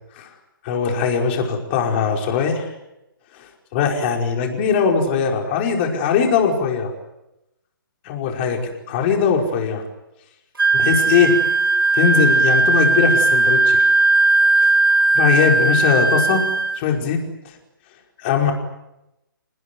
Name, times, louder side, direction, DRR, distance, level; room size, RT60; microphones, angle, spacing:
voice 1, 0.6-2.7 3.3-6.9 8.0-9.8 10.7-11.4 11.9-13.8 15.1-16.5 16.8-17.2 18.2-18.5, left 6 dB, 30° left, 2 dB, 5.2 m, -20 dB
Wind instrument woodwind instrument, 10.6-16.8, right 3 dB, 75° right, 2.4 m, -17 dB
27.0 x 20.0 x 9.4 m, 0.92 s
figure-of-eight pair, 140°, 12 cm